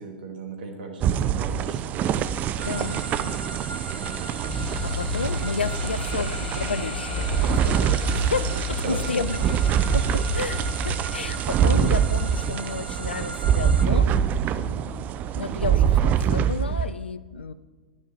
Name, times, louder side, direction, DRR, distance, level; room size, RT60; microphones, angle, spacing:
voice 1, 0.0-2.2 3.9-4.3 8.1-8.3 8.8-9.3 14.5-14.8, right 4 dB, 60° right, 3 dB, 2.1 m, -37 dB
sound 1, 1.0-16.9, right 8 dB, 30° right, 0.4 m, -25 dB
voice 2, 2.6-3.4 4.0-4.3 4.8-9.6 9.9-14.1 15.4-17.5, left 5 dB, 85° left, 14 dB, 0.5 m, -32 dB
sound 2, 2.6-13.9, right 3 dB, 85° right, 0.9 m, -38 dB
sound 3, 4.5-11.0, left 4 dB, 60° left, 1.0 m, -32 dB
10.5 x 4.7 x 7.6 m, 1.3 s
figure-of-eight pair, 105°, 6 cm